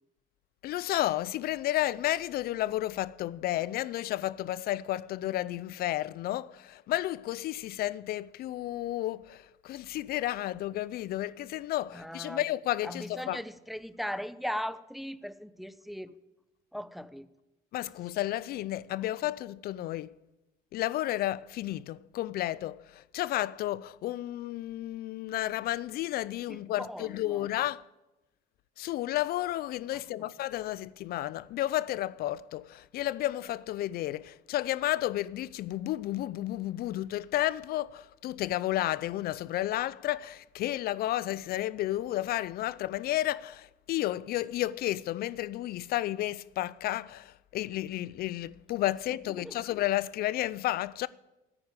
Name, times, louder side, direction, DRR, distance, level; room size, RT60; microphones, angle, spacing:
voice 1, 0.6-13.4 17.7-20.1 20.7-27.8 28.8-51.1, left 14 dB, 65° left, 0.4 m, -32 dB
voice 2, 11.9-12.4 12.8-16.2 16.7-17.3 26.5-27.5 29.9-30.3 49.4-49.6, equal, ahead, 0.6 m, -39 dB
9.8 x 9.5 x 9.8 m
cardioid pair, 110°, 17 cm